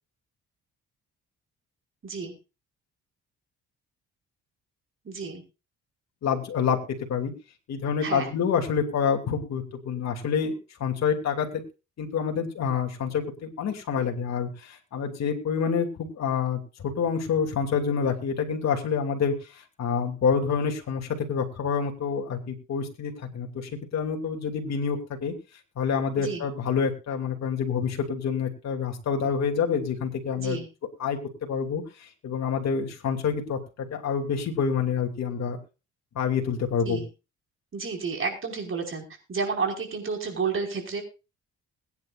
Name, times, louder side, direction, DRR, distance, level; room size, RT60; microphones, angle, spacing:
voice 1, 2.0-2.3 5.1-5.4 8.0-8.3 26.2-26.4 30.3-30.7 36.9-37.1 37.7-41.0, right 5 dB, 45° right, 2 dB, 5.4 m, -31 dB
voice 2, 6.2-7.3 7.7-10.5 10.8-11.6 12.0-19.3 19.8-25.3 25.8-30.6 31.0-31.8 32.2-33.6 33.9-35.6 36.1-37.0, left 6 dB, 60° left, 3 dB, 2.8 m, -27 dB
21.5 x 9.9 x 2.6 m, 0.31 s
cardioid pair, 90°, 30 cm